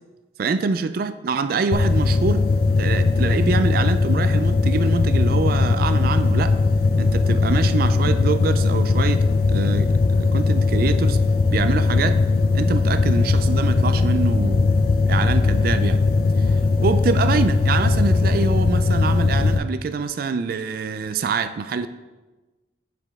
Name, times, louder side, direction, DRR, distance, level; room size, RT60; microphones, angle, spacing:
voice 1, 0.4-2.5 2.8-6.6 7.0-11.2 11.5-12.2 12.5-14.7 15.1-16.0 16.4-16.5 16.8-21.9, right 5 dB, 50° right, 11 dB, 0.3 m, -25 dB
sound 1, 1.7-19.6, left 3 dB, 50° left, 0.4 m, -19 dB
7.6 x 5.1 x 3.5 m, 1.2 s
head